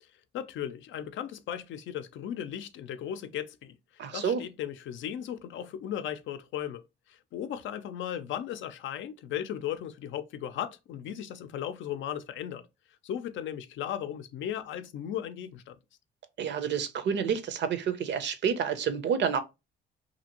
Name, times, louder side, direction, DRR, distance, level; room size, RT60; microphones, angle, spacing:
voice 1, 0.3-3.7 4.1-6.8 7.1-12.7 13.0-15.8, left 10 dB, 75° left, 0.5 m, -36 dB
voice 2, 4.0-4.4 16.4-19.4, right 7 dB, 65° right, 0.6 m, -29 dB
2.7 x 2.5 x 2.8 m
cardioid pair, 90°, 20 cm